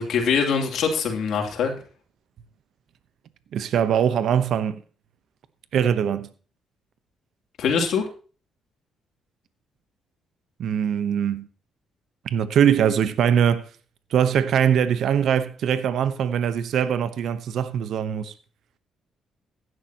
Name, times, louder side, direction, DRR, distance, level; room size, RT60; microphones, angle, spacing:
voice 1, 0.0-1.7 7.6-8.1, left 6 dB, 75° left, 3.0 m, -23 dB
voice 2, 3.5-4.8 5.7-6.3 10.6-11.5 12.3-13.7 14.1-18.3, right 8 dB, 70° right, 0.9 m, -22 dB
15.5 x 11.0 x 2.9 m
cardioid pair, 90°, 0 cm